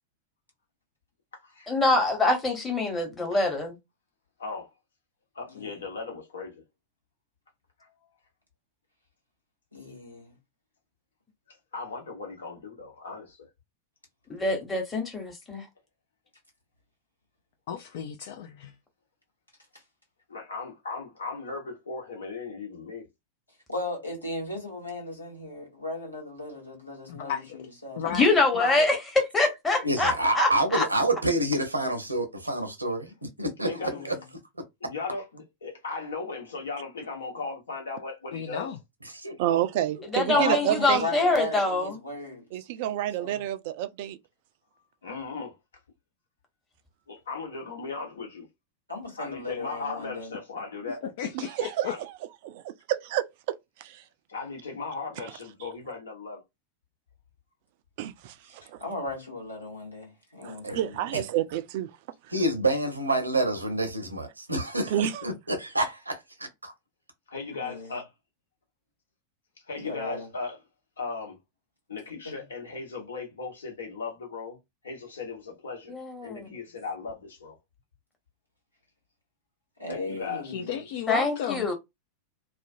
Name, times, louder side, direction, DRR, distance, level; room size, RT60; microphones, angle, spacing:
voice 1, 1.7-3.8 14.3-15.6 28.1-30.9 40.1-42.0 75.9-76.6 81.1-81.7, left 2 dB, 15° left, 1.0 m, -25 dB
voice 2, 5.3-6.6 7.8-7.9 11.7-13.5 20.3-23.0 33.6-34.1 34.8-38.7 45.0-45.5 47.1-48.5 49.2-51.0 51.8-52.0 54.3-56.4 67.3-68.0 69.7-70.6 71.0-71.4 71.9-74.6 74.8-75.9 76.2-77.6 79.9-80.4, left 4 dB, 70° left, 1.0 m, -37 dB
voice 3, 9.7-10.3 23.7-28.4 33.8-34.2 40.3-42.4 43.2-43.4 48.9-50.3 58.6-61.2 67.5-67.9 69.8-70.3 72.2-72.4 79.8-80.8, left 2 dB, 85° left, 1.2 m, -36 dB
voice 4, 17.7-18.7 27.1-27.7 28.0-28.9 38.3-38.8 51.0-51.9 80.3-81.7, left 8 dB, 55° left, 0.3 m, -34 dB
voice 5, 29.8-34.1 39.1-39.6 60.6-60.8 62.3-66.7, right 1 dB, 80° right, 0.7 m, -28 dB
voice 6, 39.4-41.1 42.5-44.2 51.3-52.2 52.4-52.6 52.9-53.3 53.8-54.0 55.2-55.3 58.0-58.8 60.4-61.9 64.9-65.3, right 12 dB, 50° right, 0.3 m, -29 dB
2.4 x 2.1 x 2.6 m
figure-of-eight pair, 90°, 0 cm